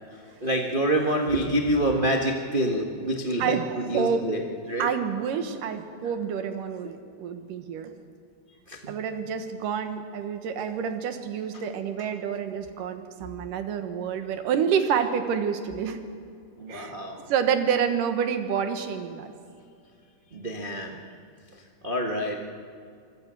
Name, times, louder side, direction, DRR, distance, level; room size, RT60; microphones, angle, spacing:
voice 1, 0.1-4.9 8.7-8.9 11.5-11.6 16.6-17.3 20.3-21.0 21.5-22.3, right 1 dB, 90° right, 1 dB, 0.4 m, -27 dB
voice 2, 3.4-4.2 4.8-7.9 8.9-16.0 16.7-16.9 17.3-19.3, right 7 dB, 75° right, 7 dB, 2.9 m, -28 dB
26.0 x 21.5 x 6.3 m, 2.4 s
omnidirectional pair, 4.0 m